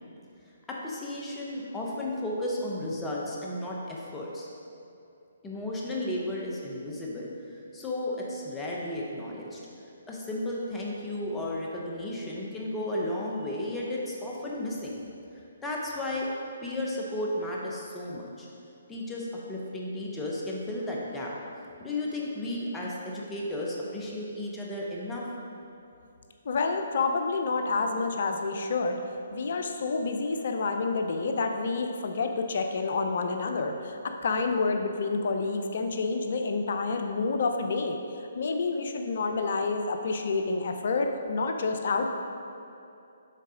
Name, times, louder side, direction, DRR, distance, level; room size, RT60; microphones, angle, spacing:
voice 1, 0.7-4.5 5.4-9.6 10.1-15.0 15.6-16.3 16.6-18.5 18.9-21.3 21.8-25.2, left 1 dB, 10° left, -4 dB, 0.9 m, -34 dB
voice 2, 26.4-29.0 29.3-42.1, left 4 dB, 60° left, 5 dB, 0.6 m, -28 dB
6.6 x 4.0 x 5.0 m, 2.7 s
hypercardioid pair, 140°, 0 cm